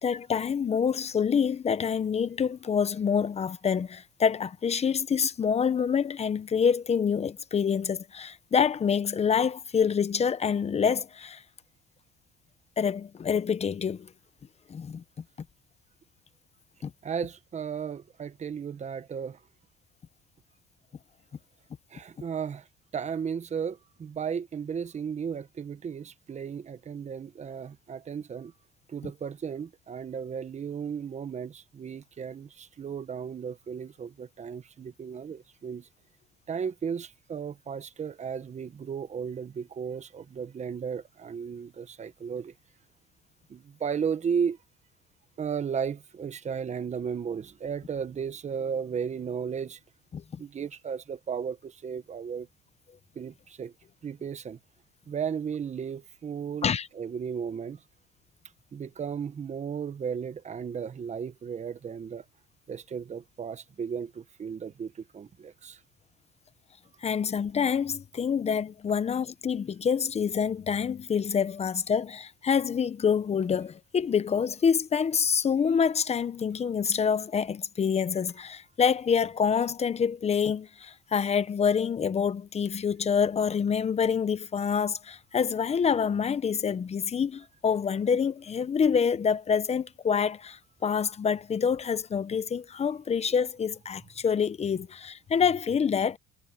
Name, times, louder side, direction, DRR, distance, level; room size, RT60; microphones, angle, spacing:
voice 1, 0.0-11.4 12.8-14.1 14.7-15.0 16.8-16.9 50.1-50.4 56.6-56.9 67.0-96.2, left 6 dB, 35° left, 0.9 m, -26 dB
voice 2, 17.0-19.4 21.9-22.7 22.9-28.5 28.9-35.9 36.5-42.5 43.5-44.6 45.4-49.8 50.4-52.5 53.1-53.7 54.0-54.6 55.1-57.8 58.7-62.2 62.7-65.8, right 7 dB, 35° right, 1.3 m, -34 dB
cardioid pair, 105°, 20 cm